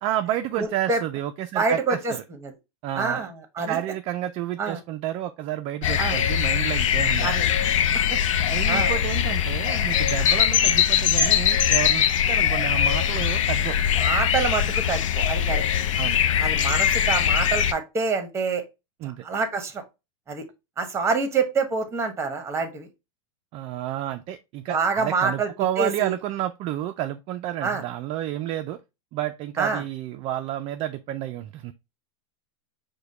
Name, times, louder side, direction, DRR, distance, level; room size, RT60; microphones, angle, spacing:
voice 1, 0.0-2.2 2.8-3.3 3.7-7.3 8.5-13.8 16.0-16.2 19.0-19.2 23.5-28.8 29.1-31.7, right 12 dB, 35° right, 0.3 m, -30 dB
voice 2, 0.6-1.0 1.5-2.1 2.4-2.5 2.9-3.8 4.6-4.8 6.0-6.2 7.2-7.5 8.1-8.2 8.7-8.9 14.0-15.6 16.4-18.6 19.2-19.8 20.3-20.4 20.8-22.9 24.7-25.5 25.8-26.1 27.6-27.8 29.6-29.8, right 4 dB, 15° right, 1.0 m, -26 dB
sound 1, 5.8-17.7, left 9 dB, 80° left, 0.5 m, -22 dB
4.9 x 2.2 x 4.1 m
hypercardioid pair, 125°, 16 cm